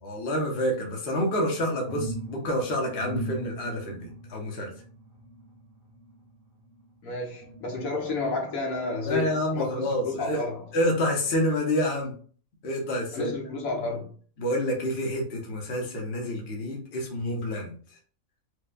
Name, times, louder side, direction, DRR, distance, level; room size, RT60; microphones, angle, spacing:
voice 1, 0.0-4.7 9.1-10.4 10.7-12.1 12.6-13.3 14.4-17.7, equal, 50° left, 1.0 m, -28 dB
sound 1, 1.1-6.9 7.4-8.5 9.0-9.1, right 1 dB, 80° right, 1.8 m, -40 dB
voice 2, 7.0-10.6 13.1-14.1, left 3 dB, 75° left, 1.3 m, -31 dB
4.8 x 2.2 x 2.2 m
omnidirectional pair, 1.5 m